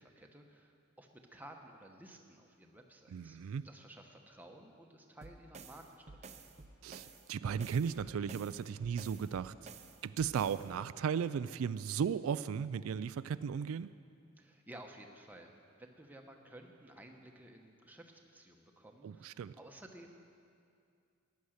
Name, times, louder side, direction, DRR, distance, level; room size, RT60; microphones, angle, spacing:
voice 1, 0.0-3.4 3.6-6.5 14.4-20.3, right 1 dB, 10° right, 2 dB, 1.0 m, -55 dB
voice 2, 3.1-3.6 6.8-9.5 10.0-13.9 19.0-19.5, right 7 dB, 85° right, 14 dB, 0.3 m, -36 dB
sound 1, 5.2-10.7, right 4 dB, 35° right, 0.7 m, -52 dB
15.0 x 10.5 x 6.5 m, 2.4 s
head